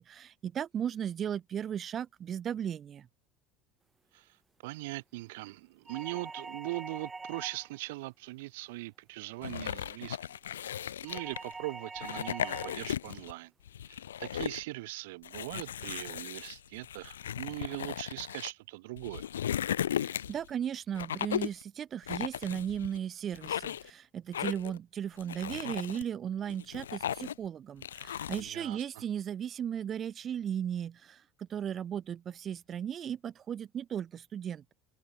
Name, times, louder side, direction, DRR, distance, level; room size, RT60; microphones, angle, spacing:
voice 1, 0.0-3.1 19.9-34.7, right 9 dB, 40° right, 2.8 m, -36 dB
voice 2, 4.6-10.2 10.7-13.5 13.9-19.3 28.4-28.8, right 21 dB, 75° right, 6.0 m, -41 dB
sound 1, 5.9-7.8 11.1-12.9, right 4 dB, 20° right, 2.9 m, -44 dB
sound 2, 9.4-11.5 12.0-13.3 13.7-14.6 15.2-18.5 19.0-20.5 20.9-21.6 22.1-23.0 23.3-23.9 24.3-24.8 25.2-26.0 26.5-27.5 27.8-28.5, left 10 dB, 85° left, 1.0 m, -36 dB
open air
hypercardioid pair, 70°, 0 cm